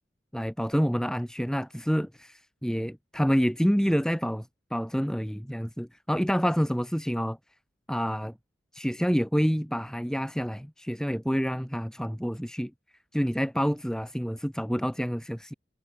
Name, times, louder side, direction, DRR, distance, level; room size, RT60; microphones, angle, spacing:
voice 1, 0.3-7.4 7.9-8.3 8.7-12.7 13.1-15.5, equal, 5° left, 6.7 m, -28 dB
head